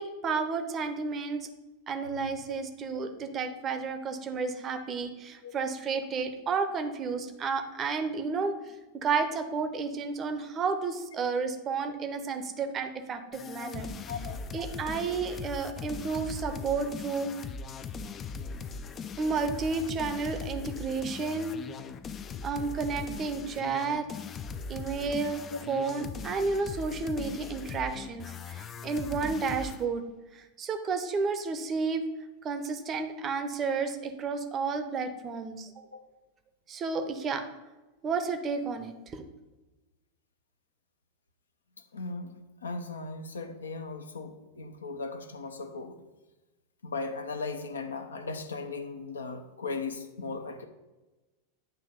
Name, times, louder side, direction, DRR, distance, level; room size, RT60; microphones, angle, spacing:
voice 1, 0.0-1.5 1.9-8.7 9.0-13.9 14.5-17.3 19.2-21.5 22.4-24.1 24.7-30.0 30.3-32.0 32.4-35.7 36.7-37.4 38.0-39.2, right 4 dB, 25° right, 8 dB, 0.7 m, -31 dB
voice 2, 2.1-2.5 5.4-5.5 14.1-14.4 25.4-25.6 35.9-36.0 41.9-42.3 42.6-46.0 46.8-50.7, left 3 dB, 70° left, 6 dB, 0.7 m, -37 dB
sound 1, 13.3-29.8, left 5 dB, 25° left, 0.3 m, -40 dB
8.9 x 3.0 x 5.0 m, 1.1 s
figure-of-eight pair, 90°, 0 cm